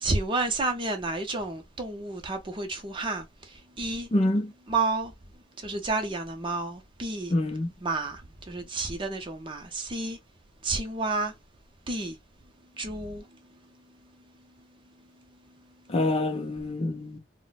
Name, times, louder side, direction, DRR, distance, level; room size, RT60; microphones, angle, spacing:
voice 1, 0.0-3.3 3.8-4.1 4.7-5.1 5.6-7.3 7.8-8.2 8.5-10.2 10.6-11.3 11.9-12.2 12.8-13.2, right 3 dB, 25° right, 0.6 m, -30 dB
voice 2, 4.1-4.5 7.3-7.7 15.9-17.2, left 1 dB, 30° left, 0.5 m, -26 dB
2.5 x 2.1 x 3.9 m
head